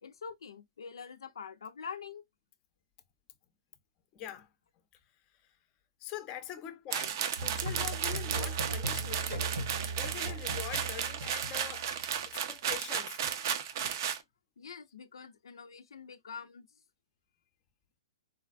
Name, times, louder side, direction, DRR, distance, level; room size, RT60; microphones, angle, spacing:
voice 1, 0.0-2.2 14.6-16.8, left 6 dB, 85° left, 0.4 m, -45 dB
voice 2, 4.1-4.5 6.0-9.5 9.9-11.9 12.3-13.2, left 11 dB, 30° left, 0.5 m, -43 dB
sound 1, 6.9-14.2, right 8 dB, 50° right, 0.5 m, -34 dB
Musical instrument, 7.4-12.2, right 2 dB, 80° right, 1.3 m, -38 dB
3.8 x 2.2 x 2.4 m
hypercardioid pair, 140°, 2 cm